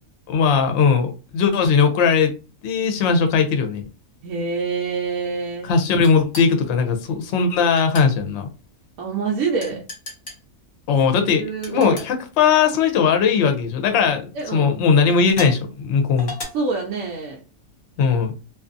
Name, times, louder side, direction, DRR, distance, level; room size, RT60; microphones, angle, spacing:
voice 1, 0.3-2.3 2.6-3.8 5.6-8.5 10.9-16.3 18.0-18.3, left 5 dB, 65° left, 6 dB, 0.8 m, -19 dB
voice 2, 4.2-5.7 9.0-9.9 11.4-12.0 14.3-14.7 16.5-17.4, right 4 dB, 80° right, -1 dB, 1.0 m, -26 dB
sound 1, 6.0-6.5 7.8-8.1 9.6-10.4 11.6-12.1 13.2-13.4 14.1-14.2 15.3-15.6 16.2-16.4, left 2 dB, 40° left, 0.9 m, -34 dB
2.5 x 2.4 x 2.5 m, 0.32 s
omnidirectional pair, 1.5 m